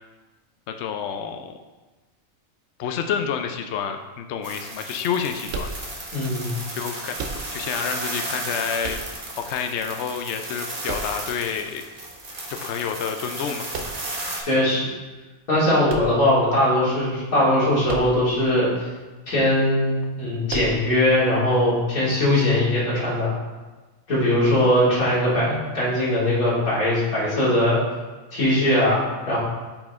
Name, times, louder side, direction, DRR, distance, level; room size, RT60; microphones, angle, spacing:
voice 1, 0.7-1.6 2.8-5.7 6.7-7.2 7.5-9.0 9.4-11.8 12.5-13.7 24.3-24.5, left 7 dB, 65° left, 6 dB, 0.8 m, -29 dB
sound 1, 4.4-14.4, right 2 dB, 30° right, 1.1 m, -34 dB
sound 2, 5.5-6.3 7.1-7.8 8.8-9.5 10.8-11.6 13.7-14.3 15.8-16.7 17.8-18.4 18.7-18.8 20.5-21.1, right 4 dB, 65° right, 1.0 m, -34 dB
voice 2, 6.1-6.6 14.4-14.8 15.5-18.7 19.3-23.3 24.1-27.8 28.3-29.4, left 1 dB, 90° left, -8 dB, 3.0 m, -20 dB
8.5 x 5.2 x 3.5 m, 1.2 s
omnidirectional pair, 1.4 m